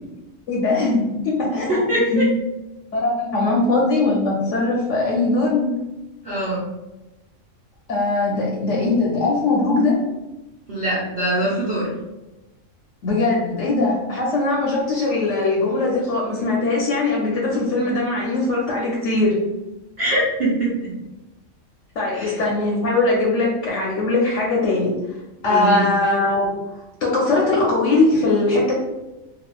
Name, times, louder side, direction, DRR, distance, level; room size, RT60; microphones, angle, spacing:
voice 1, 0.5-2.3 2.9-5.7 7.9-10.0 13.0-19.4 22.0-24.9 25.4-26.5 27.0-28.7, left 2 dB, 70° left, -3 dB, 0.9 m, -20 dB
voice 2, 1.7-2.2 6.2-6.7 10.7-11.9 20.0-20.9 22.1-22.4 25.5-25.8, right 1 dB, 45° right, -8 dB, 0.9 m, -22 dB
3.6 x 2.3 x 2.3 m, 1.0 s
omnidirectional pair, 1.4 m